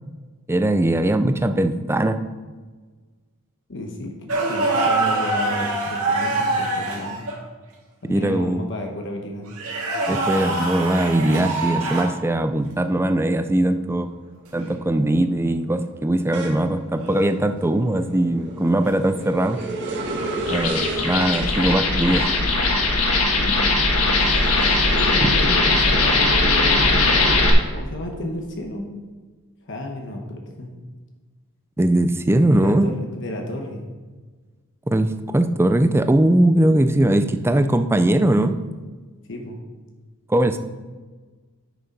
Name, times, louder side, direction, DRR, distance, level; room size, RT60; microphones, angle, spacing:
voice 1, 0.5-2.2 8.1-8.7 10.1-14.1 14.5-19.6 20.5-22.2 25.2-25.3 31.8-32.9 34.9-38.6 40.3-40.6, right 1 dB, 10° right, 9 dB, 0.4 m, -20 dB
voice 2, 3.7-7.2 8.0-9.5 23.4-23.6 24.9-27.4 27.7-28.9 29.6-30.7 32.5-33.8 39.3-39.6, left 1 dB, 55° left, 2 dB, 1.2 m, -32 dB
sound 1, 4.3-7.4 9.5-12.2 14.5-14.7 17.0-17.3 20.2-20.5 22.5-22.8, right 2 dB, 75° right, 2.1 m, -25 dB
sound 2, 13.4-13.8 14.2-25.5 25.9-27.6, right 2 dB, 55° right, 1.8 m, -34 dB
sound 3, 20.4-27.5, left 3 dB, 80° left, 1.5 m, -19 dB
9.2 x 6.9 x 5.3 m, 1.4 s
head